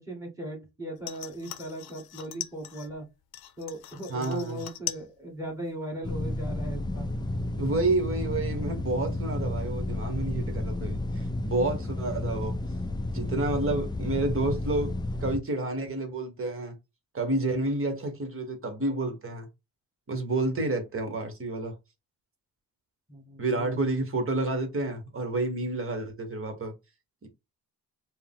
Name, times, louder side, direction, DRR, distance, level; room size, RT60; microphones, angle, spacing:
voice 1, 0.0-3.1 3.6-7.1 23.1-23.9, right 1 dB, 10° right, 1.7 m, -38 dB
sound 1, 1.0-2.9 3.3-5.1 5.4-6.0 6.4-6.5, left 11 dB, 85° left, 0.7 m, -40 dB
voice 2, 4.1-4.6 7.6-12.6 13.1-14.9 15.2-16.7 17.1-19.5 20.1-21.7 23.4-26.7 27.2-27.3, right 2 dB, 35° right, 1.3 m, -29 dB
sound 2, 6.0-15.4, left 1 dB, 10° left, 0.4 m, -32 dB
4.8 x 2.1 x 3.6 m
cardioid pair, 130°, 36 cm